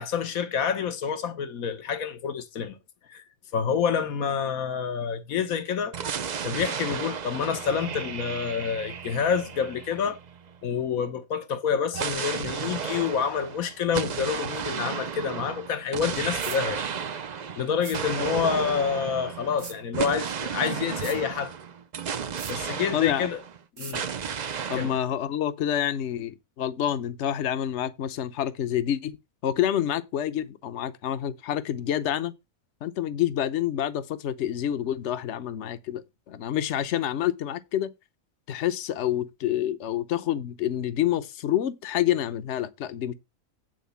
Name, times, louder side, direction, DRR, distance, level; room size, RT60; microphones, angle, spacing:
voice 1, 0.0-2.7 3.1-3.2 3.5-5.9 6.4-10.2 10.6-16.8 17.6-21.5 22.5-23.4 23.8-24.1 24.8-25.0, left 7 dB, 80° left, 1.5 m, -28 dB
sound 1, 5.9-10.6 11.9-23.6 23.9-25.0, right 7 dB, 50° right, 0.5 m, -33 dB
sound 2, 16.4-16.6 17.8-18.0 19.6-19.8 21.0-21.2 22.4-22.6 23.8-24.0, right 7 dB, 65° right, 1.3 m, -39 dB
voice 2, 22.9-23.3 24.7-29.2 29.4-32.3 32.8-37.9 38.5-43.1, left 11 dB, 60° left, 1.0 m, -28 dB
9.4 x 4.0 x 6.9 m
omnidirectional pair, 1.4 m